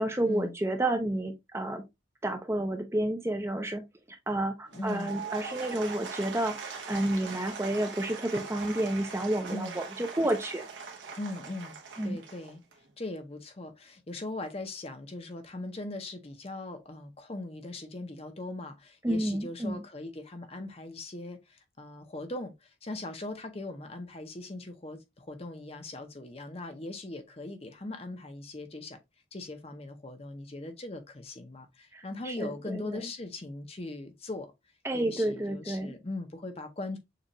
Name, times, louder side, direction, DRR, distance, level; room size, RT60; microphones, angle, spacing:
voice 1, 0.0-1.8 2.2-3.8 4.1-10.6 12.0-12.2 19.0-19.8 31.9-33.0 34.8-35.9, right 1 dB, 15° right, 0.5 m, -30 dB
voice 2, 4.7-5.2 9.5-9.8 11.2-11.8 12.0-12.6 13.0-29.0 29.3-34.5 34.9-37.0, left 2 dB, 30° left, 0.7 m, -40 dB
Applause / Crowd, 4.7-12.9, right 5 dB, 75° right, 1.1 m, -41 dB
6.6 x 2.5 x 2.9 m
head